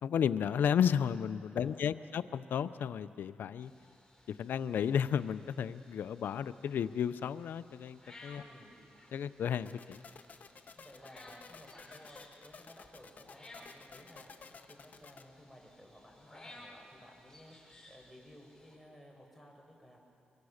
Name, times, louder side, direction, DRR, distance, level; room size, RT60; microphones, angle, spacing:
voice 1, 0.0-3.7 4.3-8.4 9.1-10.0, left 8 dB, 85° left, 14 dB, 0.6 m, -33 dB
voice 2, 1.5-2.1 8.3-8.8 10.7-20.0, equal, ahead, 0 dB, 5.7 m, -56 dB
sound 1, 3.6-18.8, left 1 dB, 15° left, 5.0 m, -58 dB
sound 2, 9.7-15.2, left 5 dB, 55° left, 1.1 m, -53 dB
24.5 x 23.0 x 6.5 m, 2.5 s
cardioid pair, 85°, 3 cm